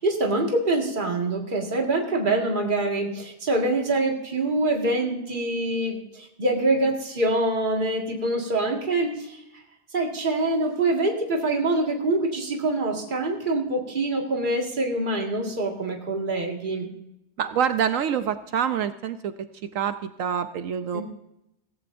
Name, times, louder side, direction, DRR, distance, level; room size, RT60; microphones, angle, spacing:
voice 1, 0.0-9.4 9.9-16.9 20.9-21.0, right 2 dB, 35° right, 1 dB, 2.0 m, -25 dB
voice 2, 17.4-19.3 19.7-21.0, right 8 dB, 70° right, 10 dB, 1.0 m, -26 dB
16.5 x 15.0 x 2.6 m, 0.85 s
omnidirectional pair, 1.5 m